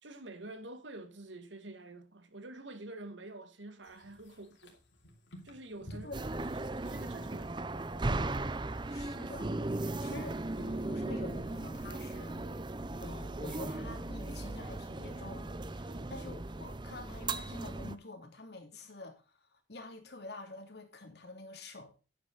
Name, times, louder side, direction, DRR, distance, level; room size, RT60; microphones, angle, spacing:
voice 1, 0.0-4.8 5.4-7.7 15.8-16.1, right 2 dB, 85° right, 1.8 m, -48 dB
sound 1, 3.8-9.5, equal, 80° left, 3.2 m, -54 dB
sound 2, 6.1-18.0, right 2 dB, 25° right, 0.6 m, -37 dB
voice 2, 8.9-12.5 13.0-21.9, left 2 dB, 60° left, 2.8 m, -48 dB
10.0 x 9.3 x 4.0 m
head